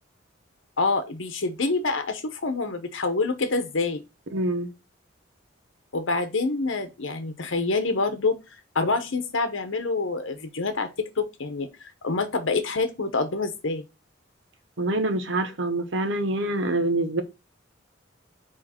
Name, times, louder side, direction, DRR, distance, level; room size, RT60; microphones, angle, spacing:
voice 1, 0.8-4.0 5.9-8.4 8.7-13.8, left 3 dB, 90° left, 1.0 m, -26 dB
voice 2, 4.3-4.7 14.8-17.2, right 2 dB, 75° right, 1.0 m, -25 dB
4.9 x 4.6 x 4.3 m
head